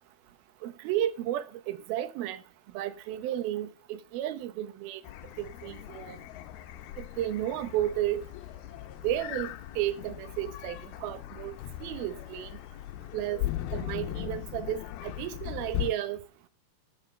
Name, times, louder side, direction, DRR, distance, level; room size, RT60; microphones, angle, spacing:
voice 1, 0.6-2.4 2.7-5.0 5.4-6.2 7.0-8.2 9.0-11.6 11.8-12.5 13.1-13.4 13.7-16.2, right 12 dB, 75° right, 2.8 m, -33 dB
sound 1, 5.0-15.9, left 14 dB, 75° left, 2.6 m, -39 dB
13.5 x 7.2 x 5.7 m
omnidirectional pair, 4.7 m